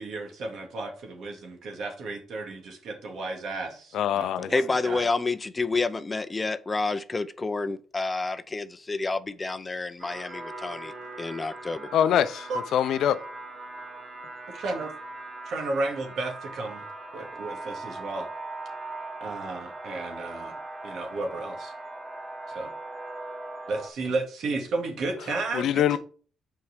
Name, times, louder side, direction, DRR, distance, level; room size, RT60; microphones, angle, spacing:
voice 1, 0.0-5.0 12.5-12.6 14.5-14.9 15.5-16.9 17.1-18.3 19.2-20.6 20.8-21.7 22.5-22.7 23.7-26.0, right 3 dB, 70° right, 2.1 m, -33 dB
voice 2, 3.9-4.5 11.9-13.2 25.5-26.0, left 10 dB, 75° left, 0.5 m, -24 dB
voice 3, 4.5-11.9, left 3 dB, 25° left, 0.5 m, -29 dB
sound 1, 10.0-23.9, right 2 dB, 30° right, 1.4 m, -40 dB
6.9 x 4.5 x 5.1 m
cardioid pair, 90°, 0 cm